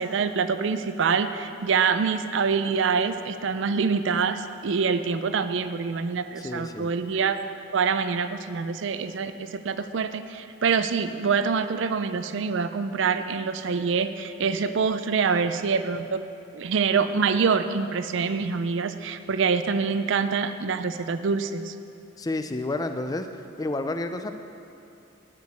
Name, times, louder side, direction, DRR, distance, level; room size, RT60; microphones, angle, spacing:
voice 1, 0.0-7.4 7.7-16.2 16.5-21.7, right 5 dB, 65° right, 11 dB, 0.4 m, -25 dB
voice 2, 6.4-6.9 22.2-24.3, left 2 dB, 20° left, 8 dB, 0.3 m, -30 dB
9.7 x 4.7 x 7.9 m, 2.8 s
head